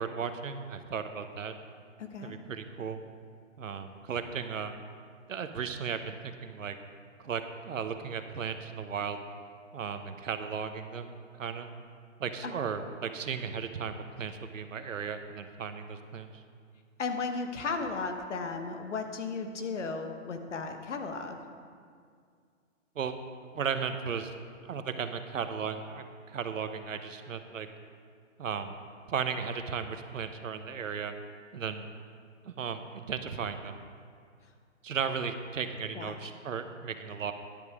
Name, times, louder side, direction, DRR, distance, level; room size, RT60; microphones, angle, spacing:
voice 1, 0.0-1.5 2.2-3.0 3.6-4.7 5.3-6.8 7.2-9.2 9.7-11.7 12.2-16.4 22.9-23.1 23.5-24.3 24.6-27.7 28.4-28.7 29.1-31.1 31.5-31.8 32.4-33.8 34.8-37.3, right 6 dB, 80° right, 8 dB, 1.0 m, -35 dB
voice 2, 2.0-2.4 12.4-12.5 17.0-21.4 35.9-36.1, left 4 dB, 65° left, 5 dB, 1.3 m, -35 dB
12.5 x 10.5 x 3.6 m, 2.2 s
hypercardioid pair, 165°, 39 cm